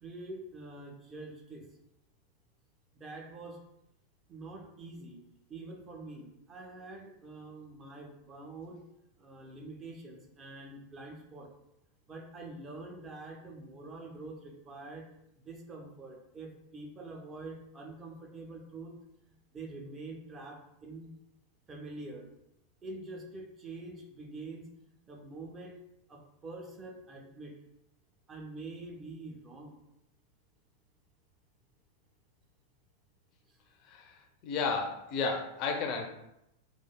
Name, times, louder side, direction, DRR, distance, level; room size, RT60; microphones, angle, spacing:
voice 1, 0.0-1.7 2.9-3.6 4.3-5.2 5.5-8.8 9.2-11.5 12.1-15.1 15.5-18.9 19.3-21.2 21.7-22.3 22.8-25.8 26.1-27.5 28.3-29.8 33.5-33.6, right 2 dB, 25° right, 1 dB, 0.5 m, -46 dB
voice 2, 34.4-36.1, left 4 dB, 40° left, 2 dB, 0.4 m, -32 dB
3.2 x 2.3 x 2.2 m, 0.83 s
figure-of-eight pair, 90°, 0 cm